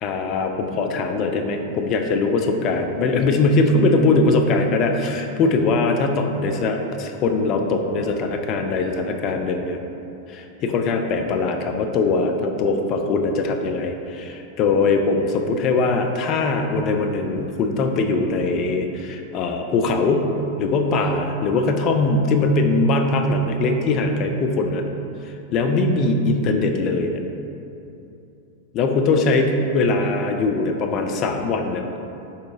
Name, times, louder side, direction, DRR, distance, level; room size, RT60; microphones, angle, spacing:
voice 1, 0.0-9.8 10.3-20.3 20.6-24.9 25.5-27.2 28.7-31.8, left 3 dB, 35° left, 4 dB, 0.3 m, -21 dB
3.7 x 2.8 x 3.5 m, 2.8 s
figure-of-eight pair, 90°, 0 cm